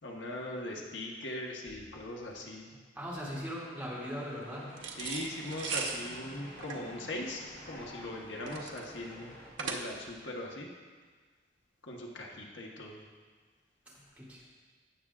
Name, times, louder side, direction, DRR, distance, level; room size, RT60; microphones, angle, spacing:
voice 1, 0.0-2.8 5.0-9.3 9.6-10.7 11.8-13.0, left 1 dB, 80° left, -1 dB, 1.2 m, -40 dB
voice 2, 3.0-4.7 14.2-14.5, equal, 10° right, -8 dB, 2.3 m, -39 dB
sound 1, 3.8-9.5, equal, 50° left, 2.9 m, -50 dB
sound 2, 4.8-10.2, right 5 dB, 85° right, 0.9 m, -39 dB
16.5 x 7.2 x 2.4 m, 1.5 s
head